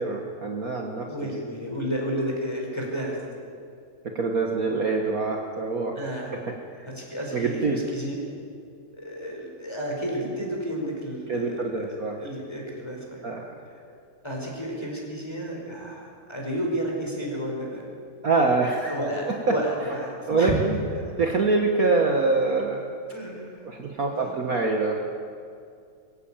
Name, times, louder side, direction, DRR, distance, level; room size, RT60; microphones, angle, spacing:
voice 1, 0.0-1.3 4.2-6.0 6.7-6.9 7.3-7.8 11.3-12.2 13.2-13.5 18.2-19.0 19.3-19.5 20.3-20.8 21.2-22.9 23.6-25.0, right 3 dB, 45° right, 1 dB, 1.8 m, -25 dB
voice 2, 1.1-3.2 5.9-6.3 6.8-8.3 8.9-13.2 14.2-17.9 18.8-20.6 21.0-21.1 23.1-23.7 24.1-24.3, equal, 10° left, -1 dB, 5.0 m, -32 dB
23.0 x 16.0 x 9.0 m, 2.3 s
omnidirectional pair, 2.2 m